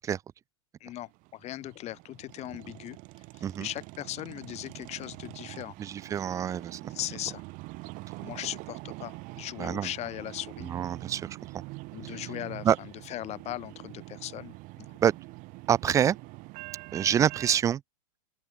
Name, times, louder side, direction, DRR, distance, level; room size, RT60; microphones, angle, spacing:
voice 1, 0.8-3.0 3.3-5.7 6.9-7.4 8.2-10.7 11.9-14.9, left 14 dB, 35° left, 4.1 m, -39 dB
sound 1, 0.9-17.6, right 24 dB, 40° right, 4.0 m, -44 dB
voice 2, 5.8-6.9 9.6-9.9 10.7-11.4 12.6-12.8 15.0-15.2 15.7-16.2 16.9-17.8, right 9 dB, 15° right, 0.4 m, -26 dB
open air
hypercardioid pair, 110°, 20 cm